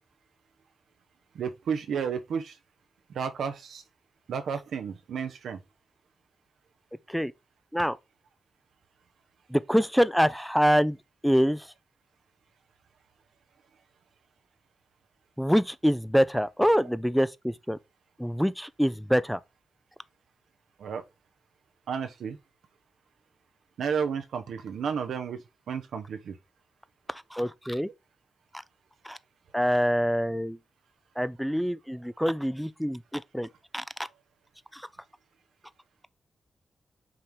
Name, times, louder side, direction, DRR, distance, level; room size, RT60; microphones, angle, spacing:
voice 1, 1.3-2.6 3.1-3.8 4.3-5.6 20.8-21.0 21.9-22.4 23.8-25.4 25.7-26.4, right 6 dB, 80° right, 1.0 m, -32 dB
voice 2, 9.5-11.0 11.2-11.7 15.4-17.8 18.2-19.4 27.1-27.9 29.0-29.2 29.5-30.6 31.2-33.5 33.7-33.8 34.7-34.9, equal, ahead, 0.5 m, -25 dB
5.9 x 3.6 x 4.5 m
cardioid pair, 55°, 0 cm